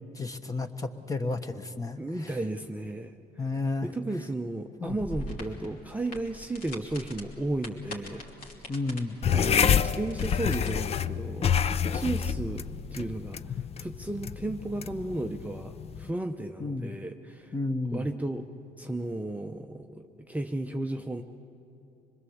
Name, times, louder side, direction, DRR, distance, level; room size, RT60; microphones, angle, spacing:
voice 1, 0.1-2.4 3.4-3.9 4.8-5.0 8.7-9.2 16.6-17.0 17.5-18.1, left 3 dB, 20° left, 8 dB, 1.2 m, -32 dB
voice 2, 2.0-3.4 3.8-8.2 9.3-17.5 17.9-18.5 18.8-21.2, right 2 dB, 10° right, 4 dB, 0.7 m, -34 dB
sound 1, 4.9-10.7, left 1 dB, 55° left, 2.9 m, -43 dB
sound 2, 9.2-16.1, left 7 dB, 35° left, 0.5 m, -28 dB
25.5 x 21.5 x 7.2 m, 2.8 s
cardioid pair, 110°, 17 cm